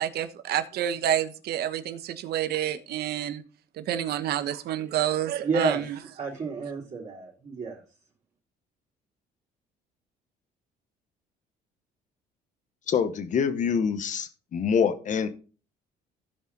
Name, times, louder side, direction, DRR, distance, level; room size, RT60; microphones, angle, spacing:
voice 1, 0.0-3.4 3.8-6.0, right 11 dB, 70° right, 1.2 m, -28 dB
voice 2, 5.4-5.9 6.2-7.8, right 4 dB, 45° right, 3.2 m, -30 dB
voice 3, 12.9-15.3, left 6 dB, 45° left, 1.2 m, -25 dB
16.0 x 5.3 x 4.0 m
cardioid pair, 110°, 17 cm